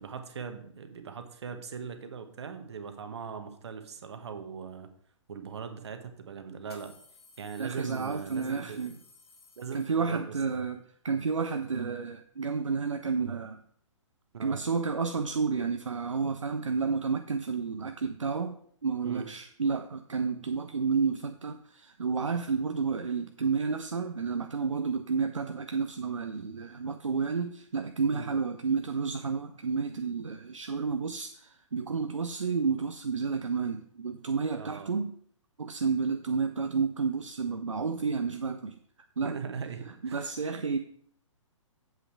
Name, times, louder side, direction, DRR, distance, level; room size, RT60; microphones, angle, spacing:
voice 1, 0.0-4.9 5.3-6.9 7.4-8.8 9.6-10.6 14.3-14.6 19.0-19.2 28.1-28.3 34.5-34.9 39.2-40.3, right 6 dB, 55° right, 8 dB, 1.2 m, -40 dB
sound 1, 5.5-5.6 6.6-10.4, left 4 dB, 55° left, 1.7 m, -57 dB
voice 2, 7.6-9.0 9.7-13.6 14.4-18.6 18.8-35.1 35.6-38.8 39.2-39.4 40.0-40.8, right 5 dB, 75° right, 7 dB, 0.6 m, -31 dB
7.8 x 5.7 x 4.7 m, 0.63 s
figure-of-eight pair, 120°, 17 cm